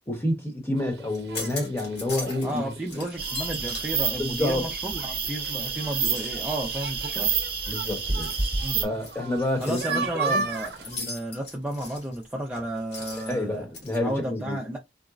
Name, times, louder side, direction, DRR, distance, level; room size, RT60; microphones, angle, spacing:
voice 1, 0.1-3.0 4.2-4.6 7.7-8.3 8.8-10.4 13.3-14.6, left 1 dB, 15° left, 1.0 m, -29 dB
sound 1, 0.8-11.0, right 4 dB, 70° right, 0.6 m, -36 dB
sound 2, 1.1-2.6 2.9-5.3 5.7-14.0, left 3 dB, 75° left, 1.7 m, -41 dB
voice 2, 2.4-7.3 8.6-9.0 9.6-13.7 14.0-14.8, right 1 dB, 10° right, 0.5 m, -33 dB
sound 3, 3.2-8.8, right 5 dB, 30° right, 1.0 m, -29 dB
3.9 x 2.1 x 2.4 m
head